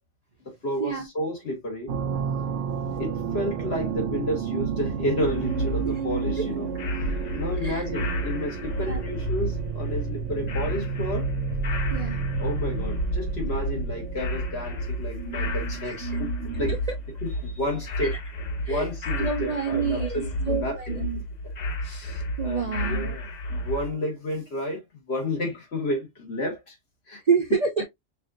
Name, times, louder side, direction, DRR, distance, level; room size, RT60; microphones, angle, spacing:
voice 1, 0.5-1.9 3.0-6.7 7.0-11.3 12.4-16.3 16.6-16.7 17.2-18.2 18.7-21.1 21.4-21.5 22.4-24.8 25.1-26.8 27.1-27.2, left 1 dB, 60° left, 1.9 m, -31 dB
sound 1, 1.9-16.9, right 6 dB, 85° right, 0.9 m, -31 dB
sound 2, 5.2-23.9, left 1 dB, 45° left, 0.6 m, -32 dB
voice 2, 19.2-21.2 21.8-23.2 27.3-27.8, right 6 dB, 50° right, 0.5 m, -28 dB
5.4 x 2.6 x 2.4 m
omnidirectional pair, 1.2 m